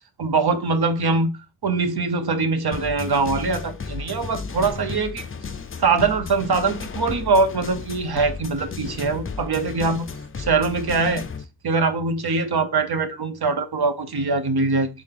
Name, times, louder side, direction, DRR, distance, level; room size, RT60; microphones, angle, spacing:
voice 1, 0.2-1.3 1.6-5.2 5.8-10.1 10.4-11.2 11.6-14.9, right 4 dB, 60° right, 0.9 m, -22 dB
sound 1, 2.7-11.4, left 5 dB, 30° left, 0.5 m, -34 dB
4.1 x 3.5 x 3.4 m
cardioid pair, 55°, 43 cm